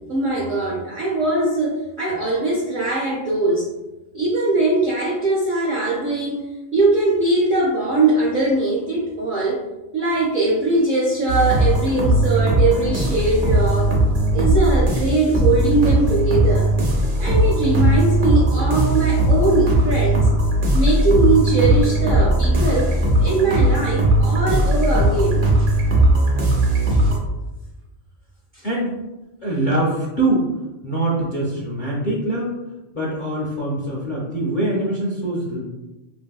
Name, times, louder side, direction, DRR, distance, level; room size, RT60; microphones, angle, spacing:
voice 1, 0.1-3.7 4.1-6.4 6.7-9.6 9.9-13.9 14.3-16.7 17.2-20.3 20.7-22.9 23.2-25.7 26.9-27.1, right 2 dB, 55° right, -5 dB, 0.6 m, -21 dB
sound 1, 11.3-27.2, right 1 dB, 85° right, 1.1 m, -18 dB
voice 2, 28.6-28.9 29.4-30.5 30.8-32.6 32.9-35.6, right 1 dB, 55° left, -4 dB, 0.6 m, -23 dB
2.9 x 2.7 x 2.3 m, 1.0 s
omnidirectional pair, 1.3 m